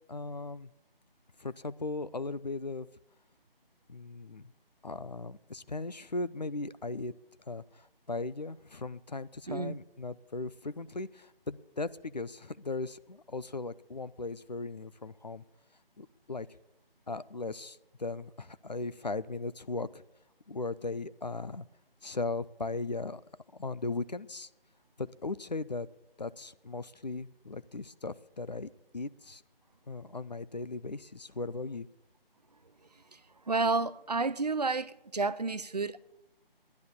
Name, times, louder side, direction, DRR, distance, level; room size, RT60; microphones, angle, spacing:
voice 1, 0.1-0.7 1.4-2.9 3.9-4.5 4.8-7.1 7.5-15.4 16.0-16.5 17.1-20.0 20.5-21.7 22.0-23.2 23.5-24.5 25.0-25.9 26.2-29.4 29.9-31.9, left 3 dB, 45° left, 0.4 m, -38 dB
voice 2, 33.5-36.0, right 3 dB, 45° right, 0.5 m, -30 dB
11.5 x 10.5 x 7.0 m
figure-of-eight pair, 160°, 29 cm